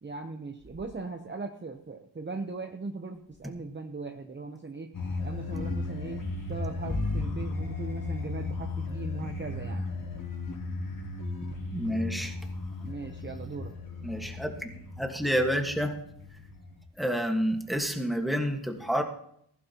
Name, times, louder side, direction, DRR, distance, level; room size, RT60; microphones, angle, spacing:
voice 1, 0.0-4.9 5.2-9.8 12.8-13.7, right 3 dB, 25° right, 4 dB, 0.8 m, -39 dB
sound 1, 4.9-16.8, left 3 dB, 50° left, 4.9 m, -35 dB
voice 2, 11.7-12.3 14.0-15.9 17.0-19.0, equal, ahead, 2 dB, 1.5 m, -29 dB
20.5 x 16.0 x 2.9 m, 0.70 s
wide cardioid pair, 175°, 42 cm